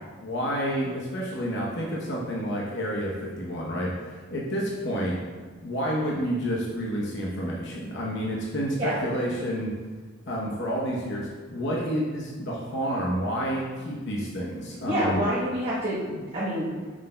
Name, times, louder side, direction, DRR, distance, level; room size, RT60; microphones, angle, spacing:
voice 1, 0.2-5.2 5.6-9.7 10.3-15.2, equal, 60° left, -4 dB, 0.9 m, -29 dB
voice 2, 14.9-16.7, equal, 30° right, -8 dB, 1.1 m, -27 dB
7.4 x 6.4 x 2.2 m, 1.4 s
head